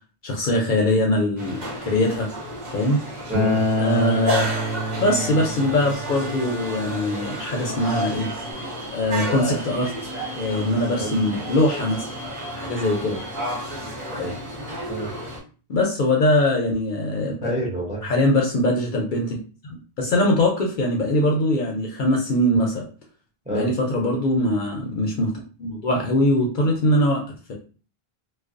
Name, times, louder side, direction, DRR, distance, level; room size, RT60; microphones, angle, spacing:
voice 1, 0.2-2.3 2.7-3.0 3.8-4.4 5.0-8.3 8.9-9.9 10.4-12.1 12.6-13.2 14.2-14.3 15.7-17.5 18.0-19.4 19.6-22.9 23.5-25.3 25.6-27.5, left 1 dB, 60° left, 0 dB, 0.6 m, -22 dB
sound 1, 1.4-15.4, equal, 45° right, 0.9 m, -31 dB
voice 2, 3.3-3.6 11.0-11.2 14.2-14.3 14.9-15.1 17.4-18.1 23.5-23.7, right 1 dB, 10° right, -3 dB, 0.5 m, -28 dB
Acoustic guitar, 3.3-8.5, left 1 dB, 65° right, 1.2 m, -28 dB
2.3 x 2.2 x 2.4 m, 0.37 s
omnidirectional pair, 1.0 m